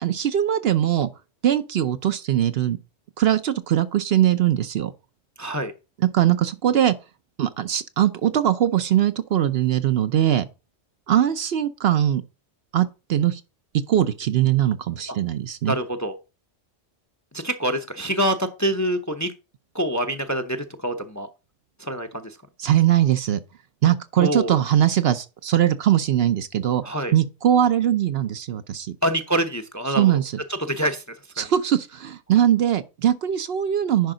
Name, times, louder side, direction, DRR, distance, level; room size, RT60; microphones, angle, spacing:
voice 1, 0.0-1.1 1.4-2.8 3.2-4.9 6.0-7.0 7.4-10.5 11.1-12.2 12.7-13.4 13.7-15.8 22.6-23.4 23.8-26.8 27.1-29.0 30.0-30.3 31.4-34.1, right 11 dB, 60° right, 0.8 m, -21 dB
voice 2, 5.4-5.7 15.7-16.1 17.3-19.3 19.7-21.3 21.8-22.4 24.2-24.6 26.8-27.1 29.0-30.1 30.6-31.0 31.4-31.5, right 1 dB, 20° left, 0.6 m, -25 dB
10.5 x 5.3 x 3.8 m
omnidirectional pair, 1.2 m